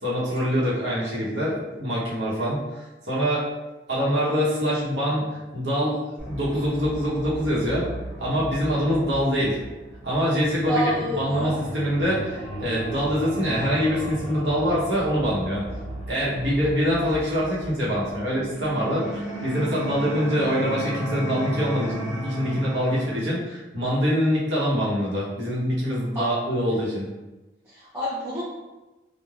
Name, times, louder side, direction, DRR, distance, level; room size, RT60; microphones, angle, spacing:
voice 1, 0.0-3.4 3.9-6.0 6.2-7.9 8.2-9.6 10.0-15.6 16.1-27.0, equal, 75° right, -7 dB, 0.9 m, -24 dB
sound 1, 6.2-23.2, right 1 dB, 5° left, 0.9 m, -35 dB
voice 2, 10.7-11.6 26.1-26.3 27.6-28.4, right 1 dB, 10° right, -12 dB, 0.5 m, -28 dB
3.2 x 2.1 x 2.4 m, 1.1 s
head